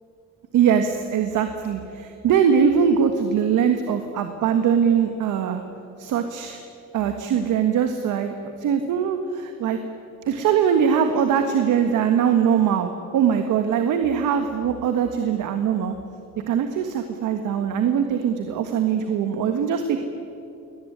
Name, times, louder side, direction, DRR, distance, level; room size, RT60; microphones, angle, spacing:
voice 1, 0.5-5.6 6.0-6.6 6.9-9.8 10.3-15.9 16.5-20.0, right 7 dB, 85° right, 6 dB, 1.7 m, -22 dB
24.0 x 18.5 x 10.0 m, 2.6 s
cardioid pair, 90°, 30 cm